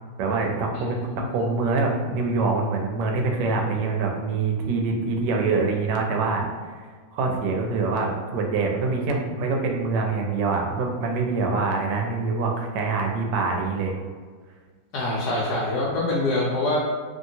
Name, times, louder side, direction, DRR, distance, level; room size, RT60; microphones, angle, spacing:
voice 1, 0.2-1.0 1.3-6.4 7.1-13.9, right 4 dB, 80° right, 1 dB, 1.2 m, -25 dB
voice 2, 0.7-1.4 14.9-16.8, left 2 dB, 70° left, -5 dB, 1.1 m, -25 dB
2.8 x 2.7 x 2.7 m, 1.5 s
omnidirectional pair, 1.9 m